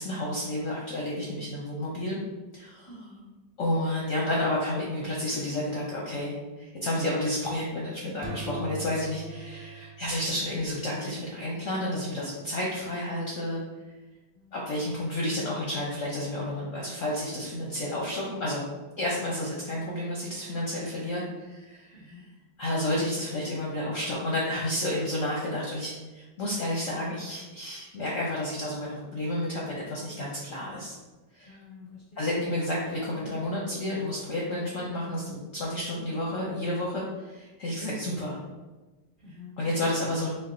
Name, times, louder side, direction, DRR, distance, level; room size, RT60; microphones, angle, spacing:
voice 1, 0.0-2.2 2.5-2.9 3.6-13.6 14.5-18.6 19.0-22.2 22.6-31.0 31.3-31.6 32.2-38.4 39.6-40.4, left 1 dB, 65° left, -4 dB, 0.8 m, -31 dB
voice 2, 2.9-3.3 14.3-15.2 21.9-22.3 31.4-32.4 39.2-39.5, left 4 dB, 40° right, -8 dB, 0.8 m, -49 dB
sound 1, 8.2-11.0, right 3 dB, 80° right, 1.5 m, -41 dB
4.5 x 3.5 x 2.6 m, 1.2 s
omnidirectional pair, 2.1 m